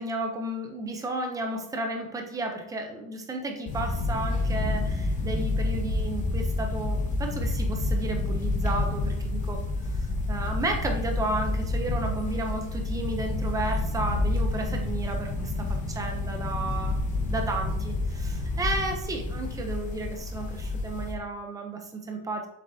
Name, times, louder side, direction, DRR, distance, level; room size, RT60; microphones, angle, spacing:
voice 1, 0.0-9.6 10.3-17.0 17.3-22.5, right 2 dB, 10° right, 3 dB, 0.4 m, -33 dB
sound 1, 3.7-21.1, left 2 dB, 15° left, 0.8 m, -29 dB
7.6 x 7.5 x 2.6 m, 0.82 s
cardioid pair, 175°, 43 cm